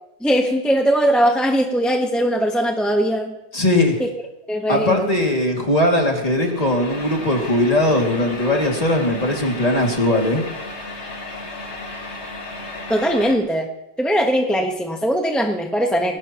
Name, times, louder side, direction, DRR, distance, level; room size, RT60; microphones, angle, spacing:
voice 1, 0.2-3.3 4.0-4.1 4.5-5.1 12.9-13.7 14.0-16.2, equal, ahead, 2 dB, 0.9 m, -20 dB
voice 2, 3.5-4.0 4.7-10.4, left 1 dB, 20° left, 0 dB, 2.4 m, -19 dB
sound 1, 6.4-13.4, left 2 dB, 35° left, 2.2 m, -34 dB
20.5 x 18.0 x 3.0 m, 0.87 s
omnidirectional pair, 2.1 m